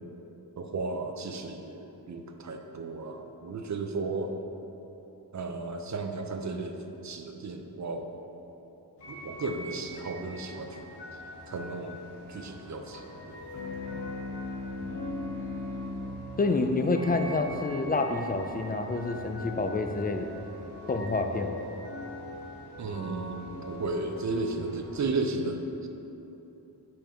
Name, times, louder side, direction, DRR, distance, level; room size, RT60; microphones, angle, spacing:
voice 1, 0.6-4.4 5.3-8.1 9.1-10.8 11.5-12.0 12.3-13.6 13.9-14.1 22.8-25.9, right 3 dB, 45° right, 5 dB, 0.5 m, -34 dB
sound 1, 9.0-25.0, left 1 dB, 75° left, 1.3 m, -43 dB
sound 2, 13.5-18.4, left 2 dB, 50° left, 1.2 m, -40 dB
voice 2, 16.4-20.3 20.9-21.6, left 3 dB, 25° left, 6 dB, 0.3 m, -28 dB
5.5 x 4.4 x 5.0 m, 3.0 s
wide cardioid pair, 105°, 41 cm